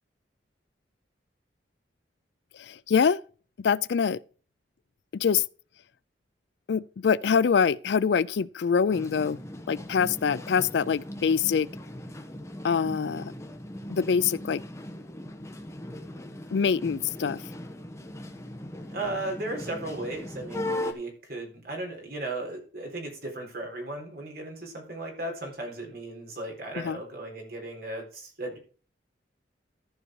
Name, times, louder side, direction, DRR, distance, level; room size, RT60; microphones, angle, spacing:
voice 1, 2.6-3.2 3.6-4.2 5.1-5.4 6.7-9.4 9.7-11.7 12.6-13.3 13.9-14.6 16.5-17.4 26.8-27.0, left 6 dB, 70° left, 0.4 m, -24 dB
sound 1, 8.9-20.9, left 1 dB, 15° left, 1.1 m, -39 dB
voice 2, 18.9-28.6, right 2 dB, 55° right, 4.1 m, -36 dB
14.0 x 5.3 x 4.7 m
head